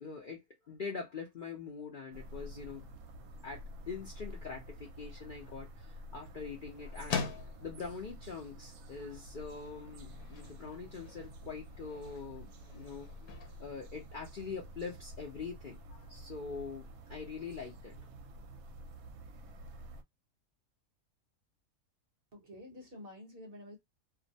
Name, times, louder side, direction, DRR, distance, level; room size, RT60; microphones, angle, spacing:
voice 1, 0.0-0.4 0.7-2.8 3.4-7.2 7.6-17.9, left 5 dB, 55° left, 0.5 m, -44 dB
sound 1, 2.1-20.0, equal, 80° right, 1.0 m, -49 dB
sound 2, 5.1-14.8, left 6 dB, 85° left, 1.0 m, -45 dB
voice 2, 22.3-23.8, left 1 dB, 50° right, 0.8 m, -49 dB
2.6 x 2.1 x 2.6 m
omnidirectional pair, 1.5 m